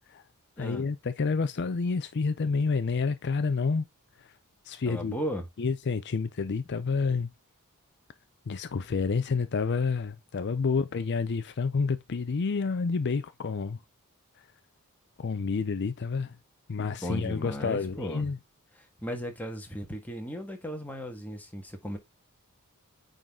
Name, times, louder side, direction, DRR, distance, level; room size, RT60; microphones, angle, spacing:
voice 1, 0.6-3.9 4.2-4.3 4.7-5.2 5.6-7.3 8.5-13.8 15.2-16.3 16.7-18.4, left 4 dB, 50° left, 0.5 m, -29 dB
voice 2, 4.8-5.4 16.8-18.3 18.7-22.0, equal, 5° left, 1.6 m, -36 dB
9.0 x 3.9 x 3.6 m
head